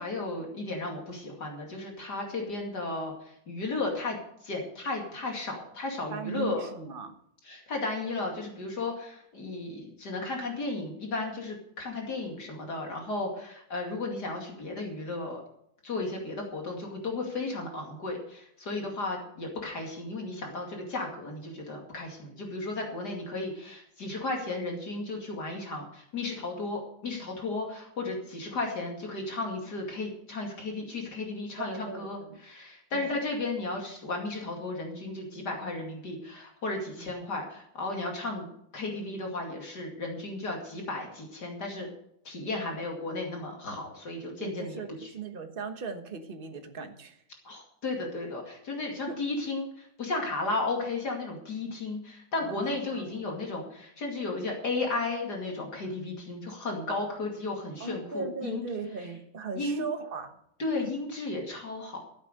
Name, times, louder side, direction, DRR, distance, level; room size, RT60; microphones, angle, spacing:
voice 1, 0.0-3.1 3.5-4.2 4.4-6.7 7.4-15.4 15.8-38.5 38.7-41.9 42.2-45.1 47.4-58.6 59.5-59.8 60.6-62.0, left 2 dB, 60° left, 1 dB, 3.0 m, -34 dB
voice 2, 6.1-7.2 31.6-32.4 32.9-33.1 36.9-37.1 44.4-47.2 49.1-49.2 52.4-53.2 57.8-60.4, right 5 dB, 35° right, 6 dB, 1.3 m, -38 dB
14.0 x 8.3 x 6.5 m, 0.71 s
omnidirectional pair, 2.0 m